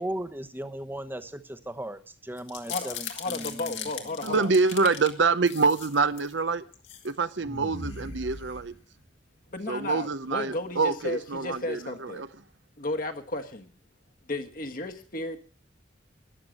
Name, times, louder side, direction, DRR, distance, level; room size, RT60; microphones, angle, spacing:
voice 1, 0.0-3.9, right 1 dB, 10° right, 1.0 m, -37 dB
sound 1, 2.4-5.1 5.5-6.3 6.7-7.1 7.4-9.0, left 6 dB, 75° left, 2.3 m, -39 dB
voice 2, 2.7-4.5 9.5-12.2 12.8-13.7 14.3-15.4, left 2 dB, 50° left, 1.5 m, -34 dB
voice 3, 4.2-6.6 7.0-8.7 9.7-12.3, right 4 dB, 75° right, 0.9 m, -26 dB
13.5 x 10.5 x 6.5 m
head